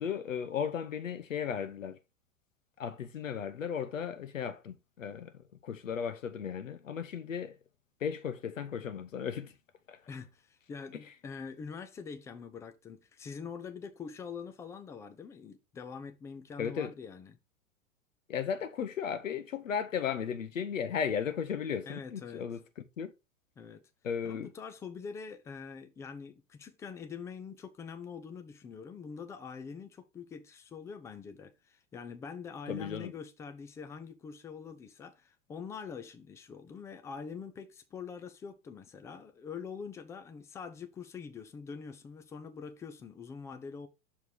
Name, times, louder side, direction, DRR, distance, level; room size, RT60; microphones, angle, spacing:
voice 1, 0.0-2.0 2.8-7.6 8.0-9.5 9.9-10.0 16.6-16.9 18.3-23.1 24.0-24.5 32.7-33.1, left 7 dB, 75° left, 0.9 m, -35 dB
voice 2, 10.1-17.4 21.9-22.4 23.6-23.8 24.2-43.9, left 6 dB, 10° left, 0.3 m, -44 dB
6.1 x 4.5 x 3.8 m
figure-of-eight pair, 90°, 40 cm